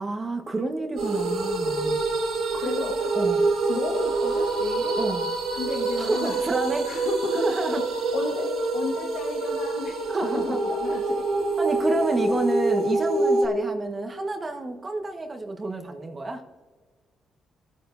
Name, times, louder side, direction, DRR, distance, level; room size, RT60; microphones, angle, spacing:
voice 1, 0.0-2.0 2.5-2.6 3.1-3.4 5.0-5.3 6.0-6.9 7.4-7.8 10.1-10.6 11.6-16.4, right 2 dB, 30° right, 4 dB, 1.3 m, -29 dB
sound 1, 1.0-13.5, right 3 dB, 80° right, 3.4 m, -26 dB
voice 2, 2.6-3.1 3.7-5.0 5.5-6.4 6.8-11.9, left 3 dB, 90° left, -1 dB, 1.5 m, -33 dB
26.5 x 9.0 x 2.7 m, 1.4 s
cardioid pair, 90°, 0 cm